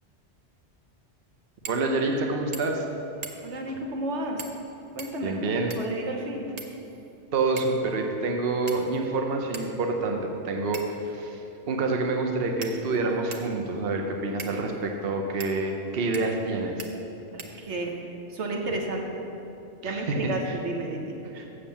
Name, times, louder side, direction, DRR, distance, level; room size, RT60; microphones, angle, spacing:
sound 1, 1.6-1.9 2.2-2.3 2.5-2.9 3.2-3.6 4.4-4.6 5.0-6.0 6.6-7.1 7.6-7.8 8.7-9.1 9.5-9.7 10.7-11.1 11.9-12.0 12.6-13.5 14.4-14.6 15.4-15.5 16.1-16.5 16.8-16.9 17.4-17.9, right 4 dB, 40° right, 0.7 m, -41 dB
voice 1, 1.7-2.9 5.2-5.7 7.3-11.4 11.7-16.8 19.8-20.3 21.3-21.5, right 3 dB, 60° right, 2 dB, 1.0 m, -27 dB
voice 2, 3.4-4.4 4.9-5.4 5.8-6.5 17.3-17.9 18.3-19.2 19.8-21.2, right 2 dB, 80° right, 1 dB, 1.3 m, -32 dB
7.4 x 6.8 x 7.2 m, 2.9 s
omnidirectional pair, 1.2 m